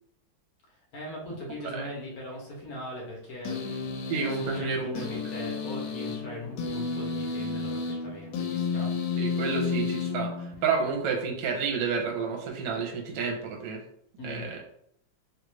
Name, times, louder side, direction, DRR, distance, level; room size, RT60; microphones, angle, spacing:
voice 1, 0.9-3.7 4.1-8.9 14.2-14.5, left 1 dB, 60° left, -2 dB, 1.1 m, -40 dB
sound 1, 3.4-10.9, left 5 dB, 75° left, 1.3 m, -32 dB
voice 2, 4.1-5.1 9.2-13.8 14.2-14.6, right 5 dB, 70° right, 1 dB, 1.3 m, -30 dB
3.2 x 2.5 x 3.0 m, 0.71 s
omnidirectional pair, 2.2 m